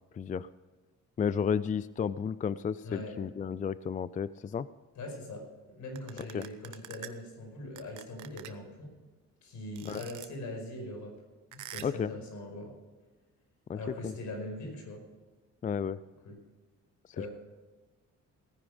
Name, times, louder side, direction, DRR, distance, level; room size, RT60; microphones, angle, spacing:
voice 1, 0.1-0.5 1.2-4.7 6.2-6.5 9.8-10.0 11.8-12.1 13.7-13.8 14.0-14.1 15.6-16.0 17.2-17.3, left 7 dB, 25° left, 17 dB, 0.4 m, -32 dB
voice 2, 2.8-3.2 5.0-5.5 5.8-8.9 9.4-11.1 11.5-12.7 13.7-15.0 16.2-16.4 17.2-17.3, left 1 dB, 75° left, 2 dB, 5.2 m, -41 dB
sound 1, 5.9-7.1 7.8-8.7 9.7-10.3 11.5-12.0, right 12 dB, 80° right, 1.0 m, -45 dB
17.5 x 10.0 x 5.0 m, 1.3 s
cardioid pair, 90°, 30 cm